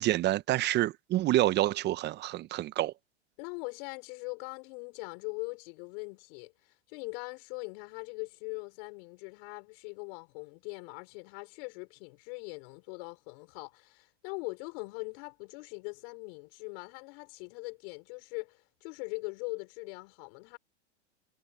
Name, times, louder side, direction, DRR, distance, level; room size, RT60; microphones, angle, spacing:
voice 1, 0.0-2.9, right 15 dB, 30° right, 0.8 m, -27 dB
voice 2, 3.4-20.6, left 33 dB, 55° left, 4.9 m, -41 dB
hypercardioid pair, 115°, 35 cm